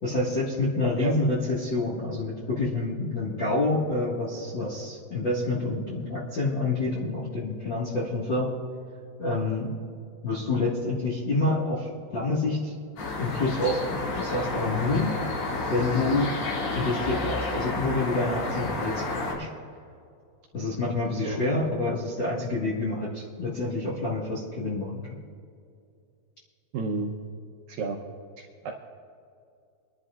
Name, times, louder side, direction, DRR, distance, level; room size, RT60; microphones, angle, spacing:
voice 1, 0.0-8.6 9.2-9.7 10.2-12.7 13.2-15.1 15.7-16.3 16.7-19.5 20.5-25.0, left 2 dB, 45° left, -7 dB, 1.5 m, -27 dB
sound 1, 13.0-19.4, left 2 dB, 70° left, 4.6 m, -31 dB
voice 2, 26.7-27.1 27.7-28.0 28.6-28.7, right 4 dB, 75° right, 0 dB, 2.2 m, -30 dB
25.5 x 11.0 x 2.5 m, 2.4 s
omnidirectional pair, 4.9 m